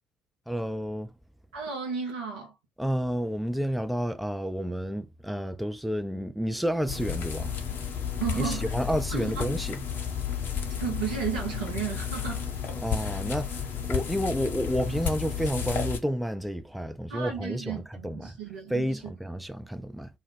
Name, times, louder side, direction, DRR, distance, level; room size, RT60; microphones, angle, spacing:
voice 1, 0.5-1.1 2.8-7.5 8.4-9.8 12.8-13.5 13.9-18.3 18.7-20.1, equal, ahead, 0.3 m, -30 dB
voice 2, 1.5-2.5 8.2-8.8 9.1-9.6 10.8-12.4 17.1-19.0, right 6 dB, 75° right, 0.5 m, -34 dB
sound 1, 6.9-16.0, left 7 dB, 50° left, 0.6 m, -32 dB
2.3 x 2.0 x 3.2 m
figure-of-eight pair, 50°, 5 cm